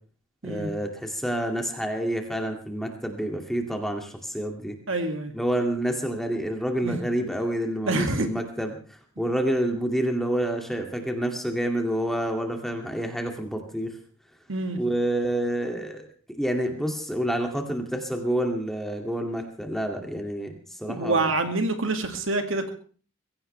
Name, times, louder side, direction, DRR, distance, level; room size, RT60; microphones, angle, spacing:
voice 1, 0.4-4.8 5.3-8.8 9.2-14.0 14.8-16.1 16.3-21.3, right 1 dB, ahead, 3 dB, 2.3 m, -28 dB
voice 2, 4.9-5.3 6.8-7.0 7.9-8.3 14.5-14.8 20.9-22.7, right 2 dB, 65° right, 6 dB, 2.3 m, -26 dB
23.0 x 16.0 x 3.4 m, 0.41 s
head